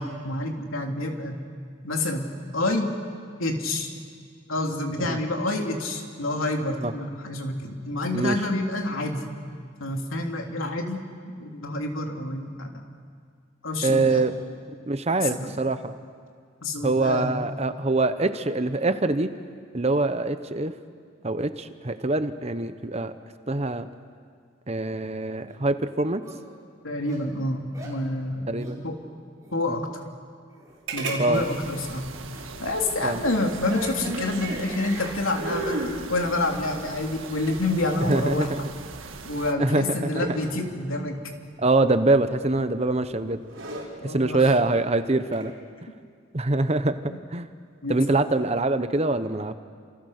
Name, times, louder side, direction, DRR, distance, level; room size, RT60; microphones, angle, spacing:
voice 1, 0.0-1.4 1.8-2.3 2.5-3.0 3.4-3.9 4.5-9.3 9.8-11.0 11.4-12.7 13.6-14.3 15.2-15.6 16.6-17.4 26.8-28.5 28.8-29.0 29.5-30.0 30.9-32.1 32.6-35.8 36.1-38.5 39.2-41.2 43.7-44.5 47.8-48.0, left 2 dB, 85° left, 2 dB, 3.2 m, -28 dB
voice 2, 13.8-14.3 14.9-15.9 16.8-19.3 19.7-20.7 21.2-23.1 23.5-23.9 24.7-26.2 28.5-28.8 29.7-29.8 31.2-31.4 33.0-33.2 38.1-38.7 39.6-40.4 41.6-43.4 44.0-45.5 46.3-46.9 47.3-47.5 47.9-49.6, right 2 dB, 30° right, 10 dB, 1.0 m, -24 dB
sound 1, 25.5-25.6 26.2-26.4 27.1-27.2 27.7-28.0 28.6-28.8 29.4-29.5 30.5-30.8 31.5-31.7 32.3-32.5 32.9-35.2, right 1 dB, 15° right, 4.9 m, -42 dB
sound 2, 30.9-31.2 31.5-31.6 33.4-34.7 35.3-36.0 37.2-38.5 40.2-40.6 42.5-42.8 43.3-43.9 45.2-45.5, right 2 dB, 65° right, 5.4 m, -33 dB
sound 3, 31.3-39.5, right 4 dB, 80° right, 1.6 m, -41 dB
30.0 x 27.5 x 6.7 m, 2.1 s
head